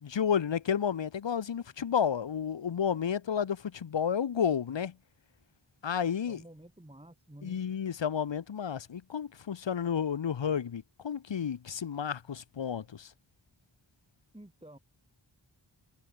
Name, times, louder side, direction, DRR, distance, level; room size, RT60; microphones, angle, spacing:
voice 1, 0.0-4.9 5.8-6.4 7.4-13.1, left 8 dB, 65° left, 0.9 m, -31 dB
voice 2, 6.3-7.6 14.3-14.8, right 1 dB, 10° right, 2.7 m, -51 dB
wide cardioid pair, 45°, 47 cm